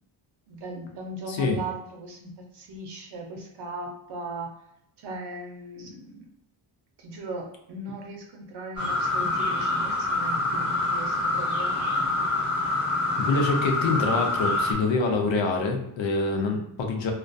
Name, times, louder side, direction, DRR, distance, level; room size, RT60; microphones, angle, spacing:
voice 1, 0.5-4.5 5.0-6.3 7.0-12.1, right 2 dB, 55° right, 1 dB, 0.6 m, -38 dB
sound 1, 8.8-14.7, left 2 dB, 5° right, 0.5 m, -26 dB
voice 2, 13.2-17.1, left 3 dB, 65° left, 3 dB, 0.6 m, -25 dB
2.3 x 2.2 x 2.5 m, 0.75 s
wide cardioid pair, 175°, 50 cm